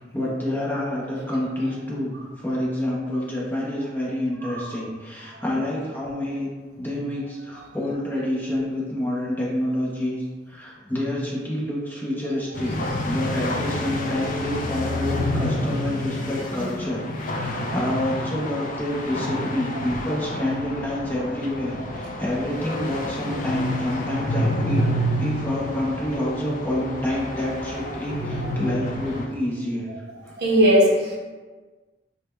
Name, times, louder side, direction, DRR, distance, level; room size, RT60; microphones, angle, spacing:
voice 1, 0.0-6.5 6.8-12.7 13.0-29.9 30.2-30.3, left 1 dB, 10° left, -6 dB, 0.6 m, -28 dB
sound 1, 12.5-29.3, left 1 dB, 45° left, 0.3 m, -29 dB
voice 2, 30.4-31.2, equal, 60° right, -2 dB, 0.6 m, -17 dB
4.8 x 2.1 x 2.2 m, 1.4 s
head